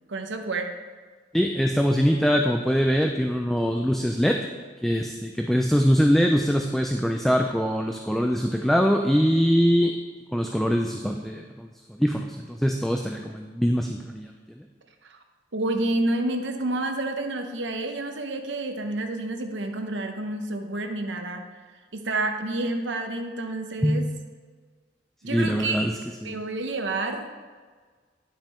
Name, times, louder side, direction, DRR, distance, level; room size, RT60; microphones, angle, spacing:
voice 1, 0.1-0.7 15.0-15.2 15.5-21.4 21.9-24.1 25.2-25.9 26.2-27.3, right 2 dB, 65° right, 5 dB, 0.9 m, -29 dB
voice 2, 1.3-4.4 4.8-9.9 10.3-14.3 14.6-14.7 23.8-24.1 25.3-25.9 26.2-26.4, equal, ahead, 3 dB, 0.3 m, -23 dB
10.0 x 5.9 x 4.3 m, 1.5 s
head